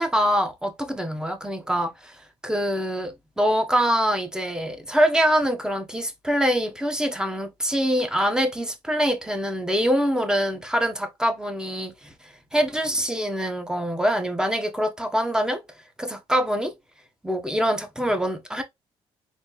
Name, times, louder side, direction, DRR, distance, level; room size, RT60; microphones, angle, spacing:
voice 1, 0.0-2.2 2.4-15.6 16.0-16.7 17.2-18.6, equal, 5° right, 1.2 m, -24 dB
4.2 x 3.0 x 3.2 m
supercardioid pair, 65°, 12 cm